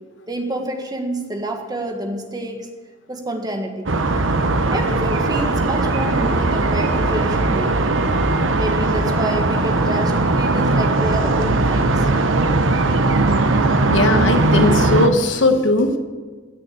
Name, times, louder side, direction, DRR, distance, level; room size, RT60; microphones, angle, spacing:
voice 1, 0.3-2.7 3.1-3.9 4.7-8.0 8.5-12.1, right 1 dB, 20° right, 4 dB, 1.7 m, -28 dB
sound 1, 3.9-15.1, right 2 dB, 80° right, 1.0 m, -18 dB
voice 2, 13.9-16.0, left 2 dB, 65° left, 7 dB, 1.3 m, -18 dB
16.5 x 6.9 x 8.5 m, 1.4 s
head